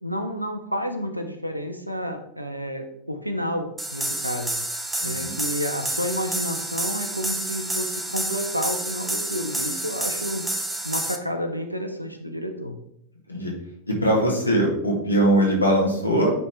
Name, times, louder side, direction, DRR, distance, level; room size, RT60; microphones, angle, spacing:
voice 1, 0.0-4.6 5.0-10.4 10.8-12.8, equal, 90° right, 6 dB, 0.8 m, -30 dB
sound 1, 3.8-11.2, right 1 dB, 5° right, 0.8 m, -29 dB
voice 2, 5.0-5.4 13.3-13.5 13.9-16.3, right 1 dB, 85° left, -1 dB, 1.8 m, -21 dB
9.3 x 4.1 x 3.6 m, 0.75 s
figure-of-eight pair, 90°, 0 cm